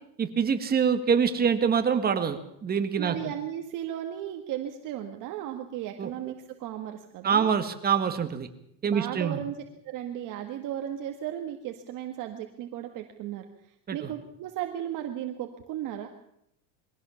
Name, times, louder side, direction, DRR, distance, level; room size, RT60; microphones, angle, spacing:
voice 1, 0.2-3.2 6.0-6.1 7.2-8.5 8.8-9.4 13.9-14.1, right 7 dB, 20° right, 8 dB, 1.8 m, -25 dB
voice 2, 3.0-7.5 8.8-9.5 9.8-13.5 13.9-16.1, right 11 dB, 45° right, 4 dB, 1.8 m, -35 dB
22.5 x 16.5 x 7.1 m, 0.76 s
supercardioid pair, 150°, 44 cm